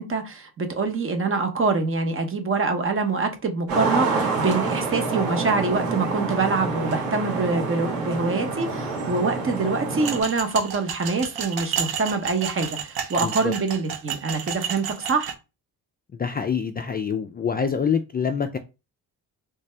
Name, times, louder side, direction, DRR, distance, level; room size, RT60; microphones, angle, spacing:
voice 1, 0.0-15.3, right 4 dB, 35° right, 6 dB, 0.9 m, -25 dB
sound 1, 3.7-10.2, right 3 dB, 90° right, 1.7 m, -27 dB
sound 2, 10.0-15.3, right 8 dB, 70° right, 0.8 m, -31 dB
voice 2, 13.2-13.5 16.1-18.6, left 6 dB, 25° left, 6 dB, 0.3 m, -26 dB
3.3 x 2.7 x 3.3 m, 0.28 s
cardioid pair, 110°, 38 cm